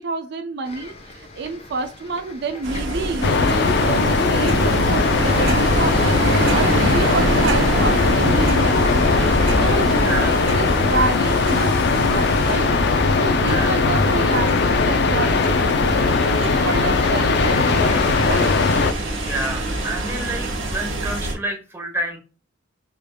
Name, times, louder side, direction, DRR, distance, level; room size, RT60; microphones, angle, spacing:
voice 1, 0.0-9.1 9.6-12.7 13.2-15.5 15.8-18.5, right 3 dB, 55° right, 0.4 m, -28 dB
sound 1, 0.6-20.3, left 2 dB, 30° left, 0.8 m, -40 dB
sound 2, 2.6-21.3, right 1 dB, 85° right, 1.3 m, -25 dB
sound 3, 3.2-18.9, left 4 dB, 60° left, 0.5 m, -19 dB
voice 2, 10.0-10.4 13.5-13.8 19.3-22.2, right 1 dB, 10° right, 1.1 m, -28 dB
5.0 x 3.4 x 2.3 m
head